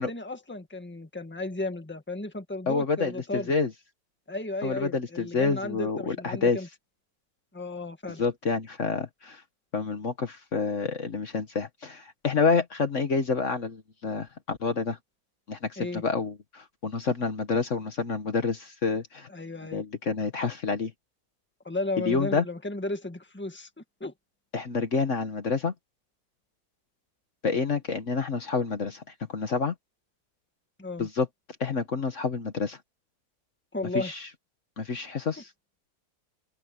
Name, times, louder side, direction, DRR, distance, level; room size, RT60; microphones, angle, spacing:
voice 1, 0.0-3.5 4.3-6.7 7.5-8.2 15.8-16.0 19.3-19.8 21.6-23.7 24.0-24.1 30.8-31.1 33.7-34.1, left 2 dB, 5° left, 1.7 m, -34 dB
voice 2, 2.7-3.7 4.6-6.6 8.2-9.4 9.7-15.0 15.5-19.3 19.7-20.9 22.0-22.4 24.5-25.7 27.4-29.0 29.3-29.7 31.0-31.3 31.6-32.8 33.9-34.3 34.8-35.5, left 4 dB, 55° left, 1.6 m, -28 dB
open air
omnidirectional pair, 1.6 m